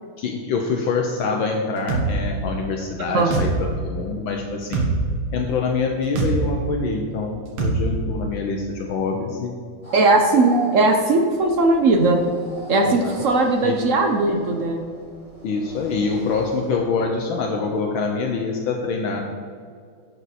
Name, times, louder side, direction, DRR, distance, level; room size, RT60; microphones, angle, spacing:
voice 1, 0.2-4.9 5.3-9.5 12.8-13.1 13.6-13.8 14.2-14.3 15.4-19.2, left 4 dB, 75° left, 2 dB, 1.6 m, -25 dB
sound 1, 1.9-2.1 3.3-3.5 4.7-4.9 6.2-6.3 7.6-7.8, right 5 dB, 80° right, 2.4 m, -21 dB
sound 2, 9.8-16.8, right 1 dB, 15° right, 2.5 m, -32 dB
voice 2, 9.9-12.2 12.7-14.8, right 2 dB, 65° right, 4 dB, 0.8 m, -18 dB
11.0 x 6.6 x 4.3 m, 2.2 s
omnidirectional pair, 2.3 m